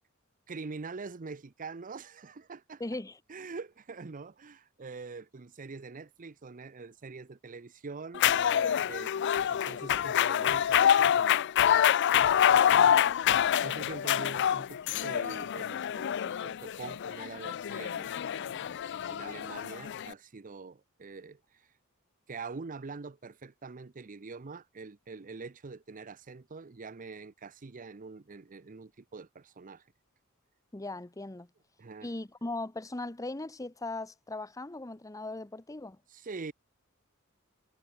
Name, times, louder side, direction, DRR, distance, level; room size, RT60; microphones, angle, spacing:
voice 1, 0.5-2.8 3.3-9.1 9.5-11.8 12.1-18.8 19.1-21.7 22.3-29.9 31.8-32.1 36.1-36.5, right 4 dB, 40° right, 0.6 m, -44 dB
voice 2, 2.8-3.2 12.5-12.9 30.7-31.5 32.0-36.0, left 2 dB, 15° left, 0.8 m, -39 dB
sound 1, 8.1-20.1, left 9 dB, 55° left, 0.4 m, -26 dB
head